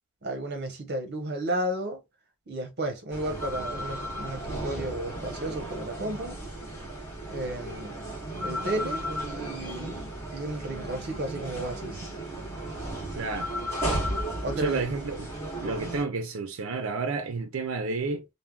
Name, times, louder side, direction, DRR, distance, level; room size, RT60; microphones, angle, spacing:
voice 1, 0.2-2.0 2.5-6.4 7.3-7.9 8.4-12.0 14.4-14.9, right 1 dB, 50° right, 0.9 m, -33 dB
sound 1, 3.1-16.0, right 1 dB, 10° left, 1.3 m, -34 dB
voice 2, 13.2-13.5 14.6-15.3 15.6-18.3, right 4 dB, 65° right, 0.5 m, -31 dB
3.3 x 2.1 x 2.3 m
head